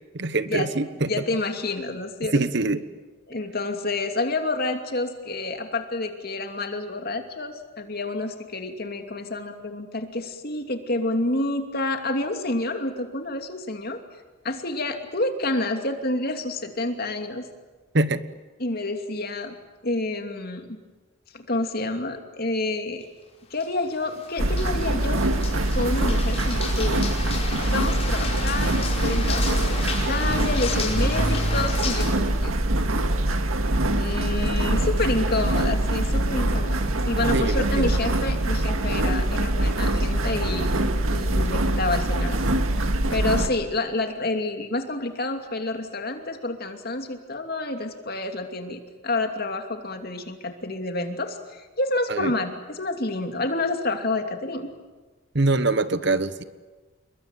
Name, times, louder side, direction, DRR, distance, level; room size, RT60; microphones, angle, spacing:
voice 1, 0.1-1.1 2.3-2.8 17.9-18.2 37.3-38.0 52.1-52.3 55.3-56.4, right 2 dB, 55° right, 13 dB, 1.2 m, -24 dB
voice 2, 1.1-2.4 3.3-14.0 14.4-17.5 18.6-19.6 19.8-20.8 21.3-23.1 23.5-25.3 25.7-27.1 27.7-32.5 33.9-40.7 41.1-42.4 42.8-42.9 43.1-54.7, left 2 dB, 45° left, 5 dB, 2.7 m, -29 dB
sound 1, 23.5-32.1, left 3 dB, 30° left, 5.0 m, -32 dB
sound 2, 24.4-43.5, right 1 dB, 90° right, 2.0 m, -24 dB
28.5 x 22.5 x 9.2 m, 1.3 s
head